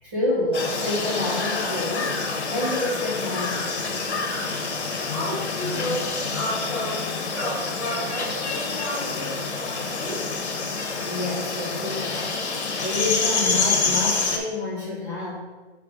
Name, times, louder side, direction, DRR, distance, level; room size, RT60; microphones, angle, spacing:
voice 1, 0.0-2.2 2.5-3.8 11.0-12.4 12.8-15.4, left 2 dB, 15° right, -6 dB, 1.1 m, -28 dB
sound 1, 0.5-14.4, left 4 dB, 75° left, 1.2 m, -27 dB
voice 2, 5.1-10.2, equal, 10° left, -12 dB, 1.6 m, -32 dB
5.6 x 3.4 x 5.1 m, 1.3 s
hypercardioid pair, 170°, 34 cm